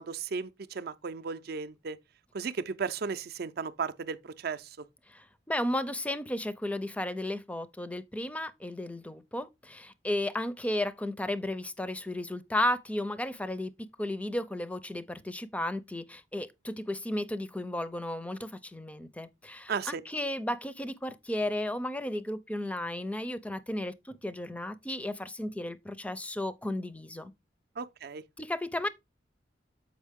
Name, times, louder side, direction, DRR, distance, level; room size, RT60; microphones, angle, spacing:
voice 1, 0.0-2.0 2.3-4.8 19.7-20.0 27.8-28.2, right 5 dB, 55° right, 0.5 m, -35 dB
voice 2, 5.1-27.3 28.4-28.9, left 1 dB, 5° left, 0.4 m, -34 dB
7.4 x 5.2 x 3.5 m
head